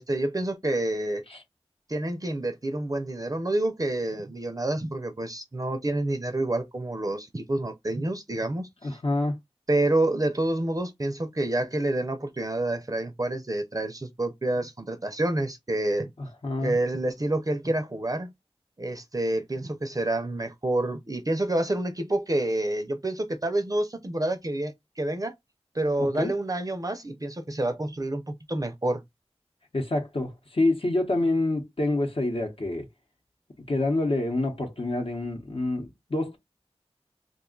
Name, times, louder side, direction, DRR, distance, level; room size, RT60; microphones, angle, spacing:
voice 1, 0.0-1.2 1.9-8.7 9.7-16.1 16.6-18.3 18.8-25.3 25.7-29.0, right 1 dB, 35° right, 0.5 m, -28 dB
voice 2, 8.8-9.4 16.2-16.7 26.0-26.3 29.7-32.9 33.7-36.4, left 2 dB, 55° left, 0.9 m, -27 dB
2.4 x 2.3 x 3.7 m
wide cardioid pair, 55°, 11 cm